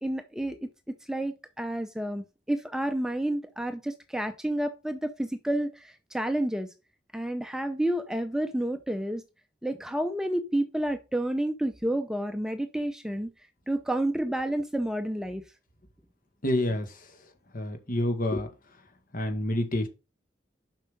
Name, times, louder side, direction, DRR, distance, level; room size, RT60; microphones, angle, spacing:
voice 1, 0.0-6.7 7.1-9.2 9.6-13.3 13.7-15.4, right 1 dB, 5° right, 0.6 m, -30 dB
voice 2, 16.4-16.9 17.5-18.5 19.1-19.9, left 1 dB, 50° left, 1.9 m, -27 dB
7.3 x 5.5 x 5.2 m
head